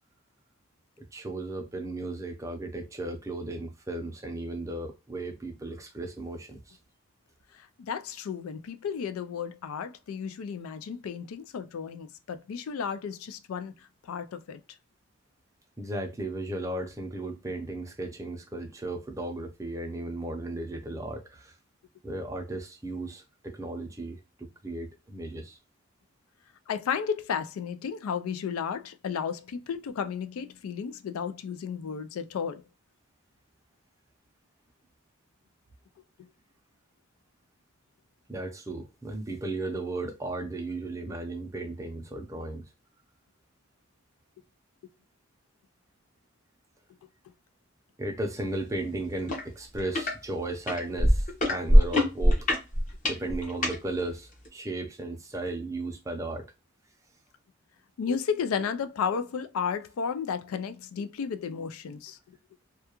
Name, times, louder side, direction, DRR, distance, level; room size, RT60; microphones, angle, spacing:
voice 1, 1.1-6.8 15.8-21.5 22.0-24.2 24.6-25.6 38.3-42.7 48.0-52.5 53.0-56.5, right 2 dB, 15° right, 0.5 m, -35 dB
voice 2, 7.5-14.6 26.7-32.6 36.2-36.3 47.0-47.1 58.0-62.2, left 6 dB, 90° left, 0.3 m, -33 dB
sound 1, 49.3-49.4 49.8-50.1 50.7-53.8 54.5-54.6, equal, 35° left, 0.7 m, -21 dB
2.3 x 2.2 x 2.9 m
head